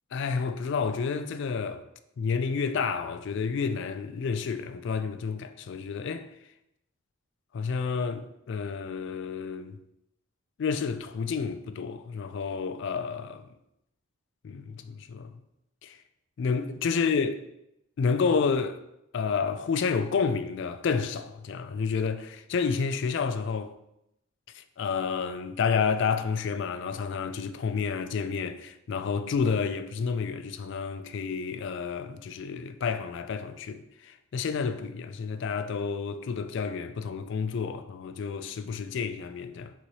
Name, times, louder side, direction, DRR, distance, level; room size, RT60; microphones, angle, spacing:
voice 1, 0.1-1.8 2.2-6.3 7.5-9.8 10.6-13.4 14.4-15.3 15.8-16.0 16.4-17.4 18.0-18.8 19.1-23.7 24.5-39.7, left 5 dB, 60° left, 0.3 m, -30 dB
3.9 x 2.8 x 4.6 m
head